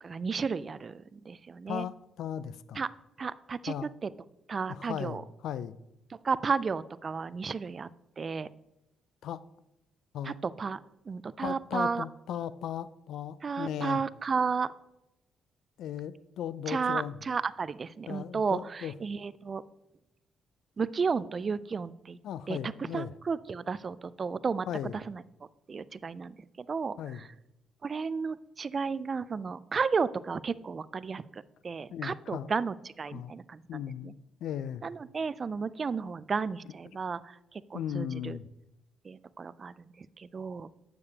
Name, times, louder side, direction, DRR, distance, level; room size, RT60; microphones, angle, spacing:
voice 1, 0.0-1.9 2.7-2.9 3.2-3.7 4.0-4.1 4.5-5.2 6.2-7.9 8.2-8.5 10.2-10.8 11.1-12.0 13.4-14.7 16.7-19.6 20.8-22.2 22.5-24.7 24.9-25.2 25.7-27.3 27.8-34.1 34.8-38.4 39.0-40.7, right 5 dB, 40° right, 0.3 m, -33 dB
voice 2, 1.7-2.8 3.7-3.9 4.7-5.8 9.2-9.4 10.1-10.4 11.4-14.0 15.8-17.2 18.1-18.9 22.2-23.1 24.7-25.0 27.0-27.2 31.9-32.5 33.1-33.3 33.7-34.8 37.7-38.5, left 9 dB, 80° left, 0.3 m, -37 dB
8.2 x 6.8 x 2.8 m
cardioid pair, 90°, 0 cm